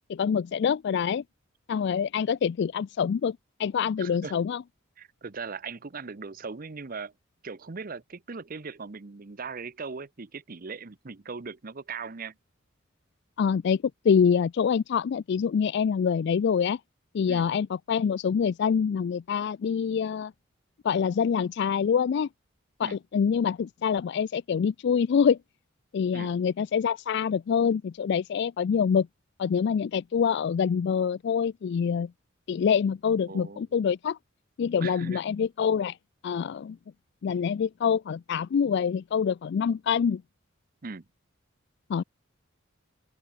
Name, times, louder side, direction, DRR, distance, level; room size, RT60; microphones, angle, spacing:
voice 1, 0.1-1.2 1.7-4.6 13.4-16.8 17.1-20.3 20.8-22.3 22.8-25.4 25.9-29.1 29.4-32.1 32.5-34.2 34.6-36.0 36.2-36.8 37.2-40.2 41.9-42.0, left 7 dB, 55° left, 0.3 m, -25 dB
voice 2, 4.0-4.4 5.0-7.1 7.4-12.3 17.3-17.5 22.8-23.0 26.1-26.3 33.2-33.7 34.8-35.2 40.8-41.1, right 4 dB, 45° right, 0.8 m, -39 dB
open air
head